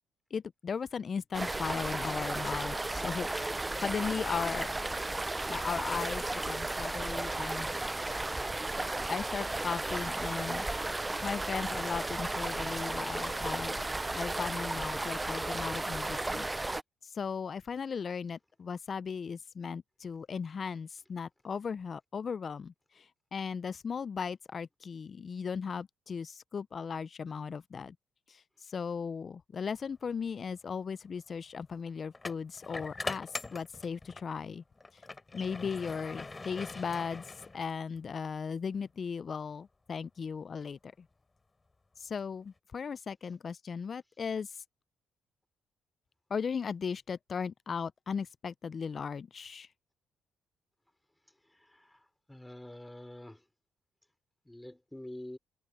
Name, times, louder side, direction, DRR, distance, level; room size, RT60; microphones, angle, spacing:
voice 1, 0.3-3.3 3.8-4.7 5.5-7.7 9.1-10.7 11.2-13.8 14.1-16.5 17.1-23.0 23.3-27.9 28.3-28.4 28.7-34.6 35.3-37.2 37.5-40.9 42.0-44.5 46.3-49.7, left 6 dB, 45° left, 0.4 m, -37 dB
sound 1, 1.3-16.8, right 2 dB, 15° right, 0.4 m, -34 dB
sound 2, 30.1-30.3 32.1-34.3 34.8-38.0, left 3 dB, 25° left, 4.1 m, -42 dB
voice 2, 52.3-53.4 54.5-55.4, left 1 dB, 10° left, 4.5 m, -46 dB
cardioid pair, 90°, 0 cm